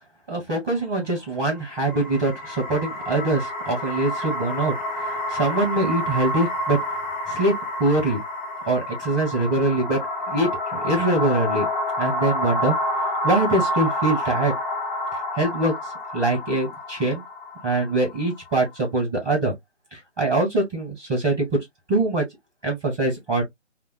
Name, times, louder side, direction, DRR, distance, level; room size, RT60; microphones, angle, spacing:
voice 1, 0.3-4.7 5.0-6.8 7.3-7.5 7.8-8.2 8.7-10.0 10.3-11.7 12.0-12.7 13.2-14.5 15.4-15.7 16.1-17.2 17.6-19.5 19.9-21.6 21.9-22.2 22.6-23.4, right 2 dB, 5° right, 0.6 m, -23 dB
sound 1, 1.6-18.7, left 1 dB, 15° left, 2.0 m, -29 dB
3.5 x 2.1 x 2.2 m
figure-of-eight pair, 155°, 36 cm